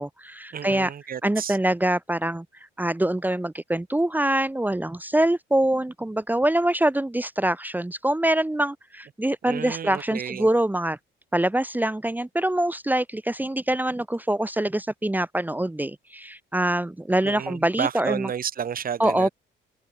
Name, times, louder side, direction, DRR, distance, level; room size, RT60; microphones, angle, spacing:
voice 1, 0.0-0.9 1.2-2.4 2.8-11.0 11.3-18.3 19.0-19.3, right 1 dB, 10° right, 1.3 m, -24 dB
voice 2, 0.5-1.6 9.5-10.5 17.2-19.3, right 8 dB, 45° right, 1.1 m, -31 dB
cardioid pair, 90°, 20 cm